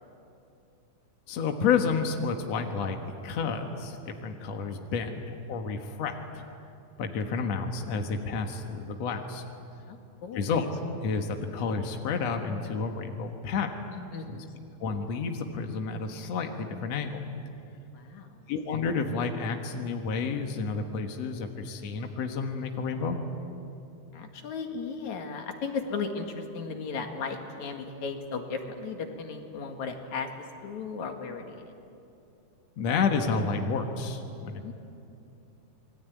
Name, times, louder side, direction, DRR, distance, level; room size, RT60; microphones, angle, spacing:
voice 1, 1.3-3.0 3.2-6.4 7.0-9.4 10.3-13.8 14.3-14.4 14.8-17.2 18.5-23.2 32.8-34.7, left 5 dB, 75° left, 4 dB, 1.5 m, -30 dB
voice 2, 9.9-10.4 14.1-14.7 17.9-18.4 24.1-30.3 30.6-31.7 34.6-34.7, left 5 dB, 50° left, 4 dB, 2.5 m, -36 dB
28.0 x 21.5 x 9.4 m, 2.7 s
omnidirectional pair, 5.3 m